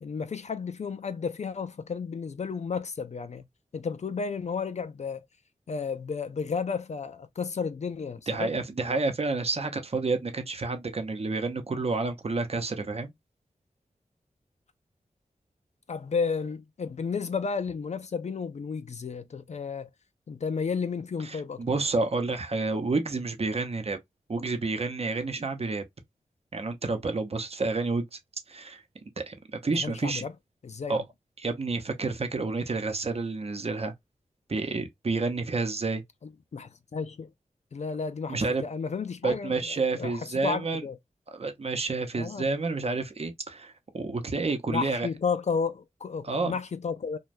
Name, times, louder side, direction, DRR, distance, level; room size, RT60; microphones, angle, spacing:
voice 1, 0.0-3.4 3.7-5.2 5.7-8.5 15.9-19.9 20.3-21.8 29.7-30.3 30.6-31.0 36.2-37.3 37.7-41.0 42.1-42.5 44.7-47.2, left 5 dB, 55° left, 0.4 m, -32 dB
voice 2, 8.3-13.1 21.2-24.0 24.3-25.8 26.5-28.2 28.5-28.8 29.2-29.3 29.6-30.2 30.9-31.0 31.4-33.9 34.5-36.0 38.3-38.6 39.2-40.8 41.3-45.1 46.2-46.5, right 3 dB, 45° right, 0.7 m, -29 dB
2.6 x 2.3 x 3.1 m
cardioid pair, 50°, 14 cm